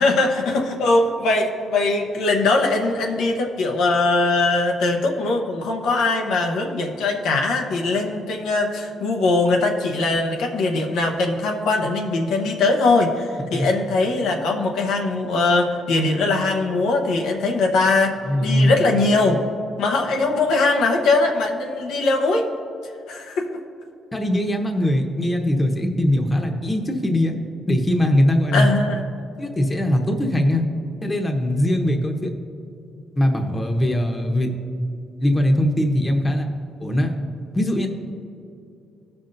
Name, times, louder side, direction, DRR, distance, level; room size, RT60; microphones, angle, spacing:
voice 1, 0.0-18.2 18.4-19.4 19.8-22.5 23.1-23.5 28.5-29.0, left 3 dB, 85° left, 1 dB, 0.8 m, -21 dB
voice 2, 18.3-18.8 24.1-27.3 27.7-28.7 29.4-30.6 31.0-32.3 33.1-34.5 35.2-36.5 36.8-37.1 37.5-37.9, left 1 dB, 20° left, 3 dB, 1.0 m, -20 dB
16.5 x 5.8 x 2.6 m, 2.6 s
cardioid pair, 90°, 0 cm